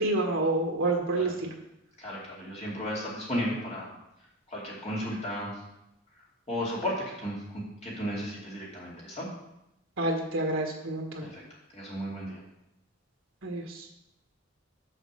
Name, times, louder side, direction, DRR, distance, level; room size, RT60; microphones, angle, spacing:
voice 1, 0.0-1.5 10.0-11.3 13.4-13.9, right 2 dB, 70° right, 1 dB, 1.5 m, -28 dB
voice 2, 2.0-3.9 4.5-5.6 6.5-9.3 11.2-11.4 11.7-12.4, equal, 30° left, -5 dB, 2.5 m, -34 dB
6.5 x 6.5 x 6.3 m, 0.86 s
head